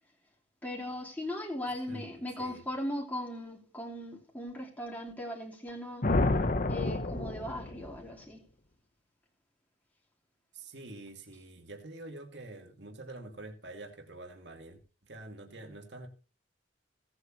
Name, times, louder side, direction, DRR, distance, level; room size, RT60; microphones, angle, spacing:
voice 1, 0.6-6.1 6.6-8.4, left 1 dB, 10° left, 2.8 m, -38 dB
voice 2, 1.9-2.6 10.5-16.1, right 2 dB, 65° right, 2.4 m, -46 dB
sound 1, 6.0-8.0, left 2 dB, 45° left, 0.9 m, -29 dB
18.0 x 8.1 x 3.0 m
head